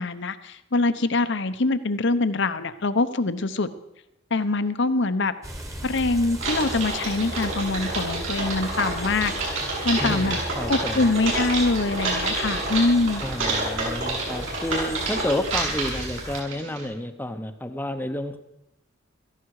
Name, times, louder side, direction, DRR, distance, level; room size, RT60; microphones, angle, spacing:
voice 1, 0.0-3.7 4.3-5.3 5.8-9.3 9.8-10.4 10.7-13.2, left 3 dB, 60° left, 12 dB, 0.9 m, -24 dB
sound 1, 5.4-16.4, right 1 dB, 15° right, 1.5 m, -37 dB
Typing, 6.4-16.8, right 2 dB, 70° right, 7.5 m, -29 dB
voice 2, 10.0-11.1 13.2-18.4, left 1 dB, 10° left, 8 dB, 0.9 m, -30 dB
17.5 x 15.0 x 4.8 m, 0.85 s
head